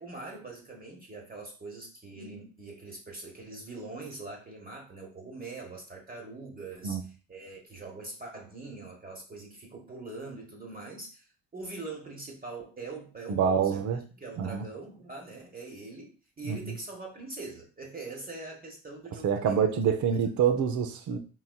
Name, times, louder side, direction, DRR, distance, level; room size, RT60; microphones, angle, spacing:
voice 1, 0.0-7.0 7.3-19.7 20.1-20.2, right 3 dB, 20° right, 0 dB, 1.2 m, -43 dB
voice 2, 13.3-14.0 14.4-14.6 16.5-16.7 19.2-21.2, right 7 dB, 45° right, 7 dB, 0.7 m, -27 dB
4.0 x 3.9 x 2.3 m, 0.36 s
figure-of-eight pair, 55°, 42 cm